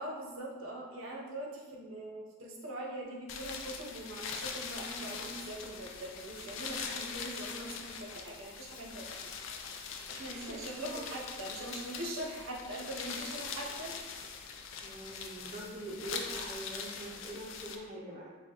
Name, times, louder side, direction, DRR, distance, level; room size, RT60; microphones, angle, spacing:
voice 1, 0.0-9.3 10.1-13.9, right 1 dB, 90° right, -2 dB, 0.8 m, -42 dB
sound 1, 3.3-17.8, left 5 dB, 70° left, 0.4 m, -42 dB
voice 2, 14.8-18.3, right 1 dB, 35° right, -5 dB, 0.6 m, -44 dB
6.4 x 2.2 x 2.9 m, 1.4 s
head